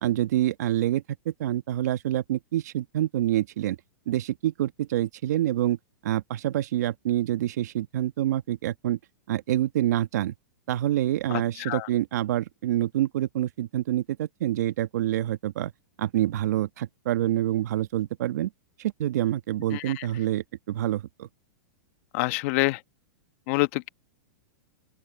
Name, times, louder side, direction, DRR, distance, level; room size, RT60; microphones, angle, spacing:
voice 1, 0.0-3.8 4.1-5.8 6.0-9.0 9.3-10.3 10.7-15.7 16.0-18.5 18.8-21.3, right 13 dB, 70° right, 1.5 m, -27 dB
voice 2, 19.7-20.1 22.1-22.8 23.5-23.9, left 22 dB, 50° left, 1.3 m, -26 dB
open air
hypercardioid pair, 140°, 9 cm